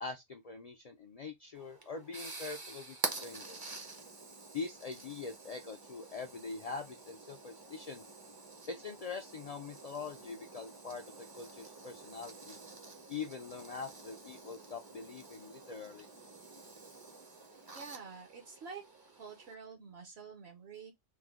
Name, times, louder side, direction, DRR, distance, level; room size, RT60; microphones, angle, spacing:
voice 1, 0.0-3.0 3.2-3.6 4.5-8.0 8.7-12.6 13.1-16.1, left 4 dB, 80° left, 0.3 m, -43 dB
sound 1, 1.6-19.5, right 3 dB, 30° right, 0.4 m, -47 dB
voice 2, 17.7-18.8 19.1-20.9, right 5 dB, 65° right, 0.9 m, -48 dB
3.2 x 2.1 x 3.4 m
omnidirectional pair, 1.2 m